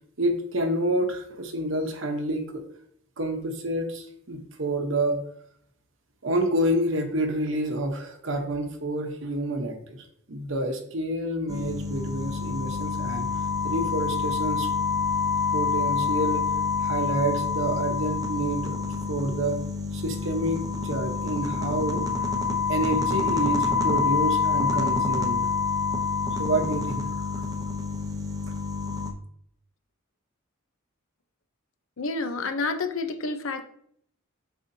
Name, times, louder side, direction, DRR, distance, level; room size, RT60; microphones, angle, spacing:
voice 1, 0.2-2.6 3.2-5.2 6.2-14.7 15.5-16.5 16.8-18.8 19.1-19.6 19.9-22.3 22.7-25.5 26.4-27.4, right 1 dB, 65° right, 5 dB, 1.0 m, -28 dB
sound 1, 11.5-29.1, left 5 dB, 15° right, 0.6 m, -27 dB
voice 2, 32.0-33.6, left 3 dB, 75° left, 8 dB, 0.7 m, -29 dB
8.2 x 4.3 x 2.7 m, 0.67 s
head